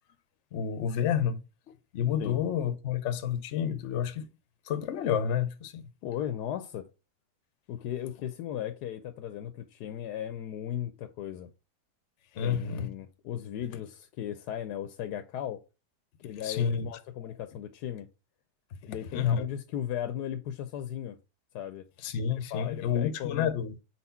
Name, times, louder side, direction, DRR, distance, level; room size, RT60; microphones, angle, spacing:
voice 1, 0.5-4.3 4.6-5.8 12.3-12.9 16.4-16.9 17.2-17.3 18.7-18.8 19.1-19.5 22.0-23.8, left 8 dB, 55° left, 0.9 m, -30 dB
voice 2, 6.0-6.9 7.7-11.5 12.4-15.6 16.2-18.1 18.8-21.2 21.5-21.8 22.3-23.5, left 10 dB, 85° left, 1.2 m, -36 dB
4.4 x 4.2 x 5.6 m
omnidirectional pair, 1.7 m